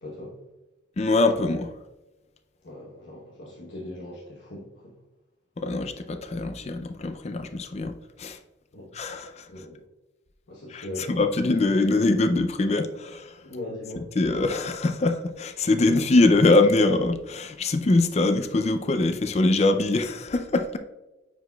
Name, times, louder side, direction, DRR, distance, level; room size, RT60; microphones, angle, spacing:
voice 1, 0.0-0.3 2.6-4.7 8.7-8.9 9.5-9.8 10.5-11.2 13.4-14.1, left 1 dB, 90° left, 1.1 m, -39 dB
voice 2, 1.0-1.7 5.6-7.9 8.2-8.4 8.9-9.5 10.7-13.3 14.0-20.8, left 2 dB, 35° left, 0.4 m, -23 dB
9.2 x 4.8 x 2.3 m
head